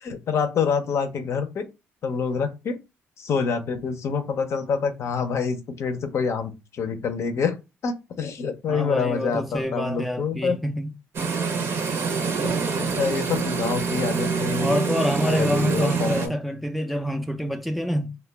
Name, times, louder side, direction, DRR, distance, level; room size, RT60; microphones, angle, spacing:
voice 1, 0.0-1.7 2.0-2.8 3.2-7.6 7.8-10.6 12.4-14.8 15.2-16.3, left 5 dB, 60° left, 0.5 m, -26 dB
voice 2, 8.7-10.9 14.6-18.2, equal, ahead, 0.4 m, -27 dB
sound 1, 11.1-16.3, right 5 dB, 55° right, 0.7 m, -26 dB
2.1 x 2.1 x 3.3 m
cardioid pair, 85°, 5 cm